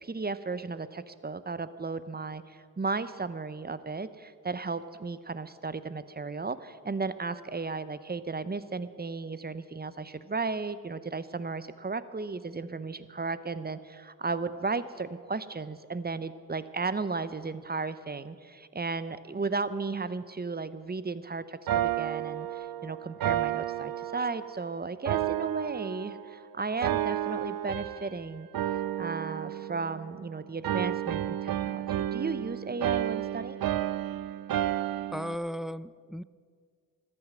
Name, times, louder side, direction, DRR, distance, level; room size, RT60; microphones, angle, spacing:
voice 1, 0.0-28.5 29.0-33.6, right 4 dB, 25° right, 14 dB, 0.7 m, -35 dB
sound 1, 21.7-24.6 25.1-26.4 26.8-28.2 28.5-30.3 30.6-35.4, right 12 dB, 75° right, 0.5 m, -31 dB
voice 2, 35.1-36.2, equal, ahead, 18 dB, 0.3 m, -35 dB
13.5 x 9.7 x 7.7 m, 2.1 s
cardioid pair, 45°, 35 cm